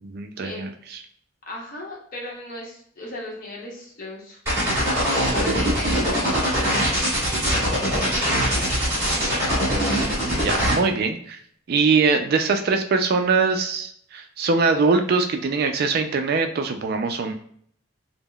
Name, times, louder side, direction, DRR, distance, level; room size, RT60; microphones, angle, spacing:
voice 1, 0.0-0.7 9.7-11.4 11.7-17.3, right 4 dB, 50° right, 6 dB, 0.3 m, -22 dB
voice 2, 1.5-4.4 4.8-7.1 7.9-8.9, left 1 dB, 45° left, -3 dB, 0.8 m, -37 dB
sound 1, 4.4-10.7, equal, 15° right, 1.3 m, -22 dB
3.6 x 2.0 x 2.2 m, 0.63 s
head